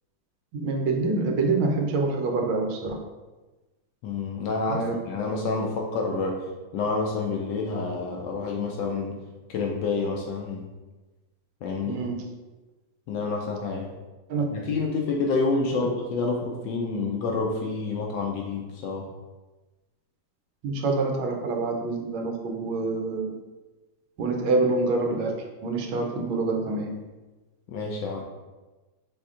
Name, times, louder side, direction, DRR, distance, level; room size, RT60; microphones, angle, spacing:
voice 1, 0.5-3.0 4.7-4.9 11.8-12.2 14.3-14.4 15.8-15.9 20.6-23.3 24.2-25.3 25.6-27.0, right 3 dB, 80° right, 2 dB, 1.4 m, -26 dB
voice 2, 4.0-6.4 6.7-9.2 9.5-10.7 11.6-12.0 13.1-13.9 14.5-19.1 27.7-28.2, left 4 dB, 75° left, 0 dB, 1.1 m, -28 dB
5.4 x 3.4 x 2.4 m, 1.2 s
omnidirectional pair, 2.2 m